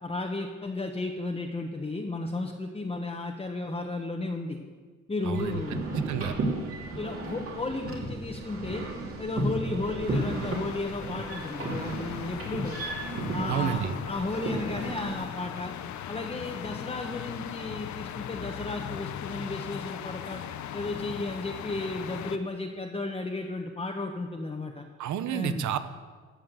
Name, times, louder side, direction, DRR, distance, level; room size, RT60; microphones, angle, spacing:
voice 1, 0.0-4.6 5.1-5.8 6.9-8.8 9.2-12.7 13.3-15.7 16.1-20.4 20.7-24.8 25.3-25.7, left 2 dB, 20° left, 1 dB, 1.1 m, -34 dB
sound 1, 5.3-15.2, right 2 dB, 50° right, 2.7 m, -34 dB
voice 2, 5.3-5.6 6.0-6.4 13.5-13.9 25.0-25.8, right 9 dB, 75° right, 12 dB, 0.9 m, -30 dB
sound 2, 10.1-22.4, left 10 dB, 70° left, 0.8 m, -39 dB
13.5 x 7.3 x 7.6 m, 1.5 s
cardioid pair, 90°, 30 cm